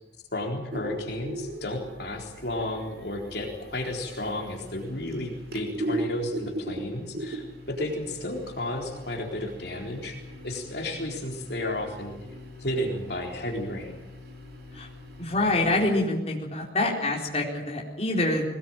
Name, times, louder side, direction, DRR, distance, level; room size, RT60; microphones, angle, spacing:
voice 1, 0.3-10.2 10.4-12.2 12.6-13.9, left 1 dB, 60° left, 1 dB, 4.1 m, -32 dB
sound 1, 0.7-16.1, right 1 dB, 55° right, 3.4 m, -39 dB
voice 2, 15.2-18.4, left 2 dB, 35° left, -2 dB, 4.4 m, -26 dB
22.0 x 19.5 x 9.0 m, 0.97 s
head